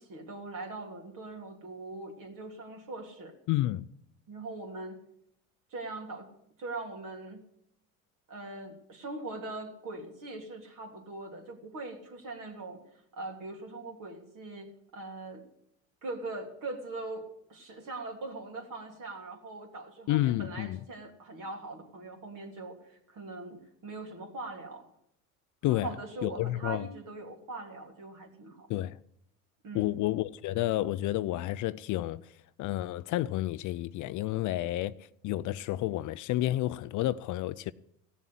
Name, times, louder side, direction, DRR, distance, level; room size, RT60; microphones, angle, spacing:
voice 1, 0.0-3.4 4.3-5.0 5.7-6.3 6.6-7.4 8.3-12.8 13.1-15.5 16.0-24.9 25.7-28.7 29.6-29.9, right 2 dB, 50° right, 3.4 m, -41 dB
voice 2, 3.5-3.9 20.1-20.8 25.6-26.0 26.2-26.9 28.7-29.0 29.7-32.3 32.6-37.7, left 15 dB, 50° left, 0.5 m, -30 dB
16.0 x 7.1 x 8.4 m
hypercardioid pair, 80°, 41 cm